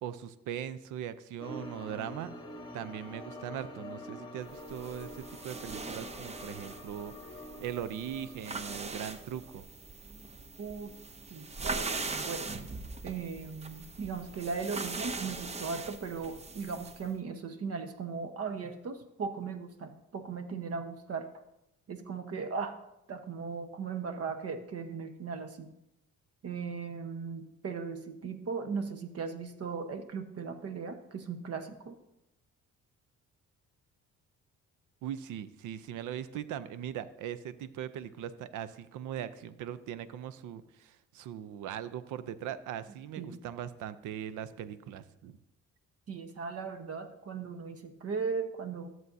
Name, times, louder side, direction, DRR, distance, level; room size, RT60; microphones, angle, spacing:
voice 1, 0.0-2.3 2.7-7.1 7.6-9.6 35.0-45.4, right 10 dB, 85° right, 14 dB, 0.6 m, -40 dB
sound 1, 1.4-9.6, left 1 dB, 15° left, 1.4 m, -46 dB
sound 2, 4.5-17.1, right 3 dB, 20° right, 0.6 m, -41 dB
voice 2, 10.6-10.9 11.3-12.5 13.0-21.3 21.9-22.8 23.1-25.7 26.4-32.0 43.2-43.4 46.1-48.9, right 5 dB, 55° right, 8 dB, 1.1 m, -38 dB
13.5 x 7.7 x 2.7 m, 0.85 s
cardioid pair, 90°, 30 cm